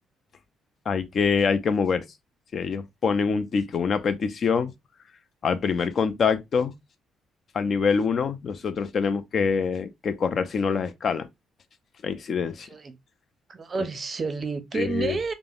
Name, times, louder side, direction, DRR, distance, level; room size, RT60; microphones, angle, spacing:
voice 1, 0.9-2.0 2.5-4.7 5.4-6.7 7.5-11.3 12.0-12.7 13.8-13.9 14.7-15.2, left 5 dB, 50° left, 0.4 m, -25 dB
voice 2, 13.5-15.3, right 4 dB, 35° right, 0.5 m, -30 dB
3.5 x 2.0 x 2.3 m
cardioid pair, 100°, 0 cm